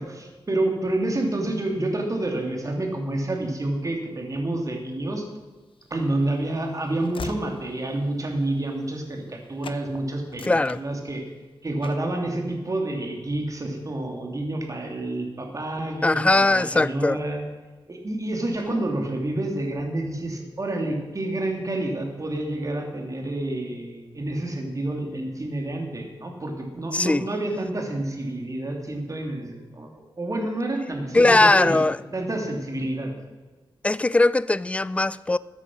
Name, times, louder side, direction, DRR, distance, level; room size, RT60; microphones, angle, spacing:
voice 1, 0.0-5.2 5.9-11.2 11.6-17.4 17.9-31.8 32.1-33.2, right 1 dB, 35° right, 3.0 m, -29 dB
Train / Slam, 5.7-9.4 9.6-9.8 10.2-11.4 11.8-12.1, left 5 dB, 65° left, 0.9 m, -42 dB
voice 2, 10.4-10.8 16.0-17.2 26.9-27.3 31.1-32.0 33.8-35.4, left 2 dB, 15° left, 0.4 m, -20 dB
14.0 x 9.6 x 6.3 m
wide cardioid pair, 85°, 9 cm